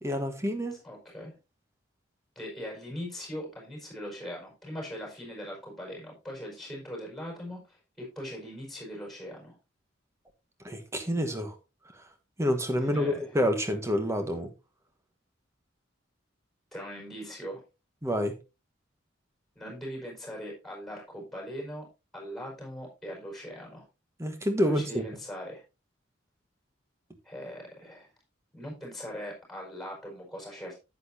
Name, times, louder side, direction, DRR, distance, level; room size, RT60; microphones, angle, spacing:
voice 1, 0.0-0.8 10.6-11.6 12.4-14.5 18.0-18.3 24.2-25.0, equal, 15° right, 1.2 m, -28 dB
voice 2, 0.8-1.4 2.3-9.5 12.8-13.3 16.7-17.6 19.5-23.8 24.6-25.6 27.2-28.1 28.5-30.8, equal, ahead, 5.2 m, -40 dB
10.5 x 8.5 x 2.6 m
head